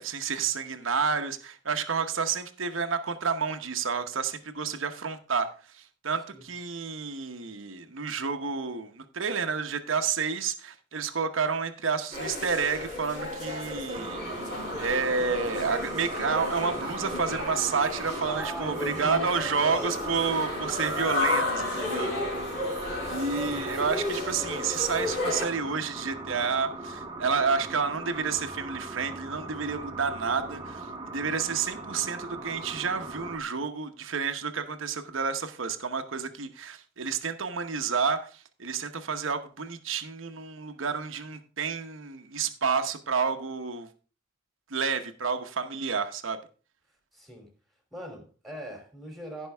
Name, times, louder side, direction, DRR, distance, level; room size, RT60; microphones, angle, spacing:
voice 1, 0.0-14.5 14.8-22.1 23.1-30.9 31.1-43.9 44.7-46.4, right 5 dB, 75° right, 1.0 m, -30 dB
sound 1, 12.1-25.5, left 2 dB, 55° left, 4.7 m, -33 dB
sound 2, 13.9-33.4, right 2 dB, 25° right, 1.0 m, -39 dB
voice 2, 18.3-20.0 23.5-23.7 47.1-47.5 47.9-49.5, equal, ahead, 3.0 m, -40 dB
16.0 x 5.4 x 3.4 m
head